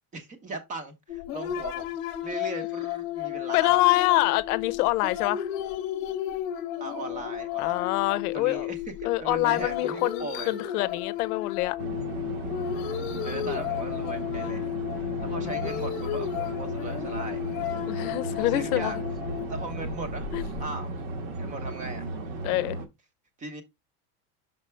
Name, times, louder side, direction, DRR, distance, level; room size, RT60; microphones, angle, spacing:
voice 1, 0.1-3.8 6.8-7.9 8.3-10.5 13.2-14.7 15.2-17.4 18.0-18.1 18.4-19.0 19.5-20.3 20.6-20.9 21.4-22.1 23.4-23.6, right 2 dB, 15° right, 0.8 m, -38 dB
sound 1, 1.1-20.6, left 12 dB, 45° left, 0.9 m, -33 dB
voice 2, 3.5-5.5 7.6-8.7 9.0-11.8 15.0-15.8 17.9-18.9 20.3-20.4 22.4-22.8, left 18 dB, 75° left, 0.7 m, -26 dB
sound 2, 11.8-22.9, right 2 dB, 50° right, 1.3 m, -35 dB
5.8 x 5.5 x 3.1 m
supercardioid pair, 170°, 46 cm